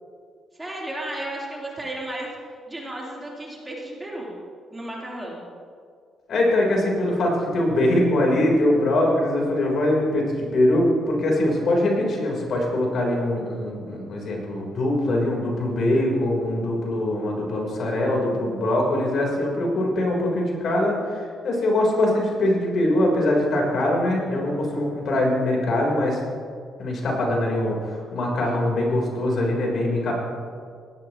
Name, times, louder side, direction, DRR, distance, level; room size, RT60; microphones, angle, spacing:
voice 1, 0.6-2.3 2.7-4.3 4.7-5.5, right 1 dB, 15° right, -4 dB, 3.4 m, -33 dB
voice 2, 6.3-26.2 26.8-30.2, left 1 dB, 60° left, -1 dB, 3.6 m, -22 dB
18.0 x 12.0 x 3.0 m, 2.1 s
cardioid pair, 90°, 0 cm